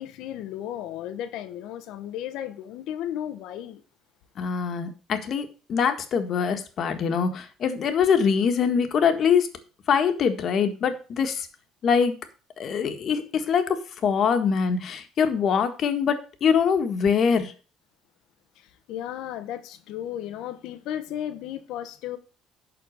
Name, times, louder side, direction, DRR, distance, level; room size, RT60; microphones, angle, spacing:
voice 1, 0.0-3.8 18.6-22.2, left 11 dB, 75° left, 1.1 m, -34 dB
voice 2, 4.4-9.5 9.9-11.5 11.8-12.1 12.6-13.8 14.0-17.5, left 6 dB, 50° left, 1.6 m, -23 dB
11.5 x 4.3 x 6.4 m
cardioid pair, 110°, 0 cm